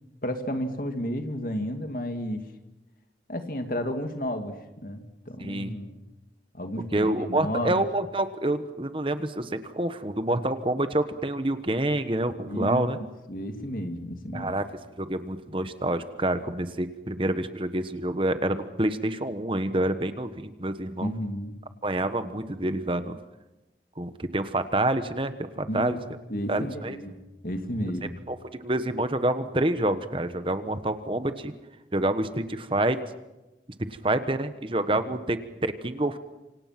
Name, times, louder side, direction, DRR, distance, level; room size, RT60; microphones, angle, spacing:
voice 1, 0.2-2.4 3.3-6.0 6.5-7.8 12.5-14.6 21.0-21.6 25.7-26.0 26.3-28.2, equal, 50° left, 6 dB, 2.4 m, -32 dB
voice 2, 5.4-5.7 6.9-13.0 14.3-14.6 15.0-21.1 21.8-23.2 24.0-26.0 26.5-27.0 28.3-28.4 28.6-31.5 31.9-33.0 34.0-36.2, right 1 dB, 30° right, 10 dB, 1.2 m, -27 dB
27.5 x 26.0 x 6.0 m, 0.99 s
head